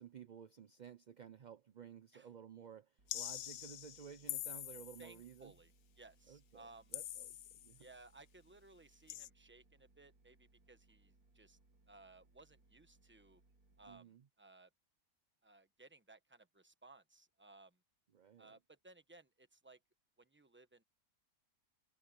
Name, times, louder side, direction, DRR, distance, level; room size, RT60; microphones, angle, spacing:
voice 1, 0.0-5.5 6.3-7.9 13.8-14.2 18.1-18.5, right 8 dB, 50° right, 0.5 m, -55 dB
sound 1, 3.0-14.0, right 2 dB, 80° right, 2.7 m, -71 dB
sound 2, 3.1-5.2 6.9-7.8 9.1-9.3, left 12 dB, 70° left, 1.0 m, -45 dB
voice 2, 5.0-6.9 7.8-11.6 11.9-13.4 13.8-14.7 15.4-17.8 18.4-19.8 20.2-20.8, right 2 dB, 10° right, 1.0 m, -61 dB
omnidirectional pair, 1.5 m